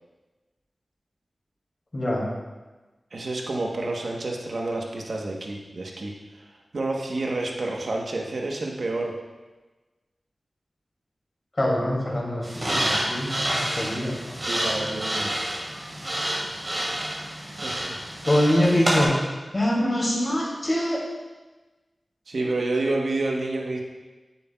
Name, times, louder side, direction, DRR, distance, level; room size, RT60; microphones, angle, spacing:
voice 1, 1.9-2.2 11.6-14.2 18.2-19.1 19.5-21.0, left 1 dB, 35° left, -5 dB, 2.6 m, -24 dB
voice 2, 3.1-6.1 6.7-9.1 14.4-15.4 17.5-18.0 22.3-23.8, right 2 dB, 70° right, 0 dB, 1.1 m, -29 dB
sound 1, 12.4-19.0, right 1 dB, 40° right, 2.5 m, -28 dB
9.6 x 8.4 x 2.3 m, 1.2 s
wide cardioid pair, 60°, 0 cm